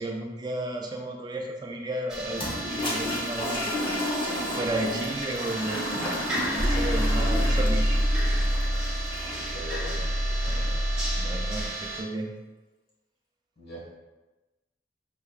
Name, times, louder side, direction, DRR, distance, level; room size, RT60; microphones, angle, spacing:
voice 1, 0.0-3.7 4.5-7.9 10.5-10.7 11.2-12.3, right 1 dB, 25° right, 1 dB, 0.4 m, -33 dB
Annoying noise at train station, 2.1-12.0, right 2 dB, 5° right, 1.1 m, -35 dB
Toilet flush, 2.3-9.5, left 1 dB, 30° left, 0.9 m, -32 dB
sound 1, 6.6-11.7, equal, 65° right, 0.9 m, -26 dB
voice 2, 9.2-10.0 10.4-10.8 13.6-13.8, left 1 dB, 60° left, -4 dB, 1.3 m, -41 dB
5.6 x 3.4 x 2.4 m, 1.1 s
head